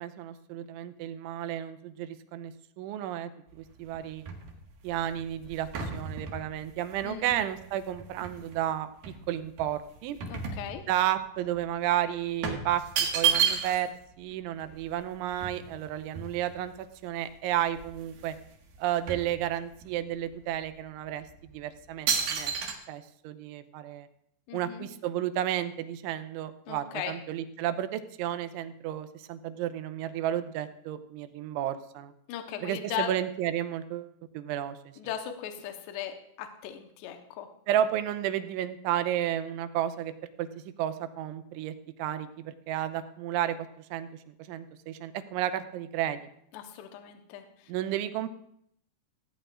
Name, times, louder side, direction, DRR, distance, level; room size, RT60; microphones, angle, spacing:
voice 1, 0.0-4.2 4.8-8.9 9.3-10.2 10.9-12.8 13.1-16.7 17.0-18.4 18.8-21.3 21.5-22.5 22.9-24.1 24.5-32.1 32.6-34.8 37.7-40.1 40.4-40.5 40.8-43.6 43.9-46.3 47.7-48.3, right 11 dB, 85° right, 11 dB, 3.2 m, -32 dB
sound 1, 3.5-8.6 9.0-11.2 11.5-11.7 12.4-14.0 14.3-14.4 14.6-16.8 17.3-17.4 17.7-18.4 18.7-19.9 20.5-20.7 21.3-21.5 22.1-22.7, right 7 dB, 60° right, 3.0 m, -32 dB
voice 2, 7.0-7.4 10.3-10.8 24.5-24.9 26.7-27.2 32.3-33.1 35.0-37.5 46.5-47.7, left 10 dB, 75° left, 5 dB, 3.0 m, -38 dB
18.0 x 16.5 x 2.5 m, 0.71 s
omnidirectional pair, 5.3 m